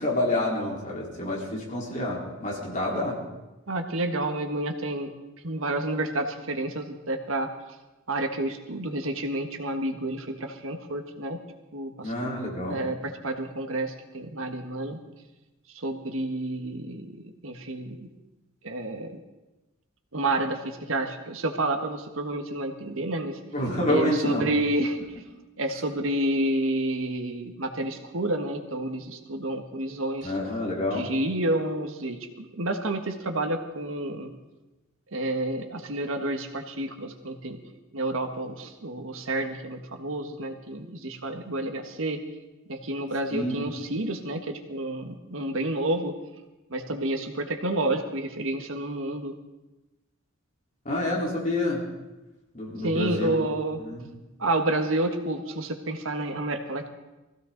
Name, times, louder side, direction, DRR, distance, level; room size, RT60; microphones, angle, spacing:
voice 1, 0.0-3.2 12.0-12.8 23.5-24.4 30.2-31.1 43.3-43.6 50.8-51.8 52.5-53.3 53.8-54.1, left 1 dB, 40° left, -3 dB, 4.0 m, -28 dB
voice 2, 3.7-5.1 5.4-7.5 8.1-11.4 11.7-12.1 12.7-15.0 15.7-18.1 18.6-19.2 20.1-23.4 23.9-25.2 25.6-30.3 30.9-34.3 35.1-37.6 37.9-42.2 42.7-46.1 46.7-49.3 52.8-53.8 54.4-56.9, right 1 dB, 80° right, 5 dB, 1.5 m, -29 dB
21.5 x 15.5 x 3.9 m, 1.1 s
head